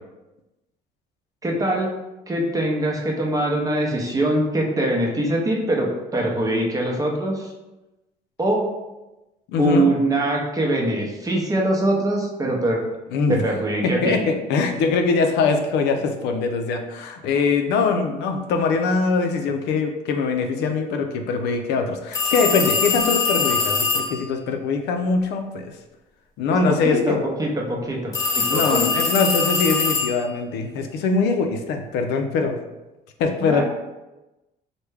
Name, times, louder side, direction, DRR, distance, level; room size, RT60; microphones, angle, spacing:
voice 1, 1.4-1.9 2.3-7.5 8.4-8.7 9.6-12.8 13.3-14.2 26.5-28.9 33.4-33.6, right 1 dB, 20° right, -1 dB, 0.6 m, -23 dB
voice 2, 9.5-9.9 13.1-13.4 13.8-25.7 26.4-27.2 28.5-32.6 33.2-33.6, left 4 dB, 80° left, 5 dB, 0.4 m, -22 dB
sound 1, 22.1-24.2 28.1-30.3, left 4 dB, 20° left, 0.8 m, -22 dB
3.3 x 2.1 x 3.2 m, 1.0 s
cardioid pair, 110°, 17 cm